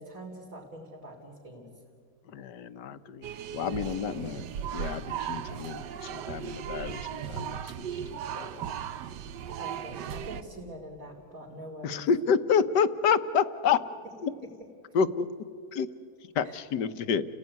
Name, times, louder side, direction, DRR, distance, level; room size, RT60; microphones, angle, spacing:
voice 1, 0.0-1.8 9.5-12.0 16.4-16.6, right 1 dB, 50° right, -4 dB, 3.7 m, -44 dB
voice 2, 2.3-3.3 3.5-4.4 4.7-8.7 11.8-13.8 14.2-14.3 14.9-15.3 15.7-15.9 16.3-17.3, left 6 dB, 80° left, 13 dB, 1.5 m, -29 dB
sound 1, 3.2-10.4, right 9 dB, 85° right, 1.5 m, -37 dB
30.0 x 17.0 x 9.6 m, 2.1 s
omnidirectional pair, 1.8 m